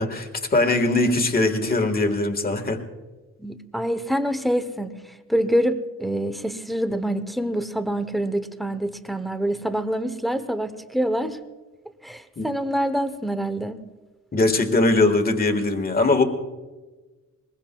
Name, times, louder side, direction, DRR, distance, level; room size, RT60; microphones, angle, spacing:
voice 1, 0.0-2.8 12.4-12.5 14.3-16.2, left 2 dB, 30° left, 6 dB, 1.5 m, -21 dB
voice 2, 3.4-5.0 5.3-11.4 12.0-13.8, equal, ahead, 10 dB, 0.7 m, -26 dB
22.0 x 21.5 x 2.3 m, 1.2 s
wide cardioid pair, 180°, 31 cm